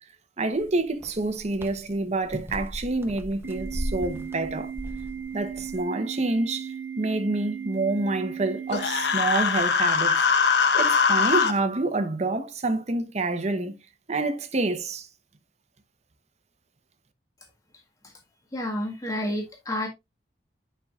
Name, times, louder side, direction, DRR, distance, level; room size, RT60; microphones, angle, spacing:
voice 1, 0.4-4.7 5.3-10.2 10.7-13.8 14.1-15.1, right 2 dB, 40° right, 1.0 m, -27 dB
sound 1, 0.5-5.8, equal, 15° right, 1.1 m, -37 dB
Organ, 3.4-9.4, right 7 dB, 80° right, 1.3 m, -37 dB
Human voice, 8.7-11.5, left 5 dB, 70° left, 1.0 m, -22 dB
voice 2, 18.5-19.9, left 1 dB, 20° left, 1.7 m, -29 dB
9.7 x 5.7 x 2.4 m
head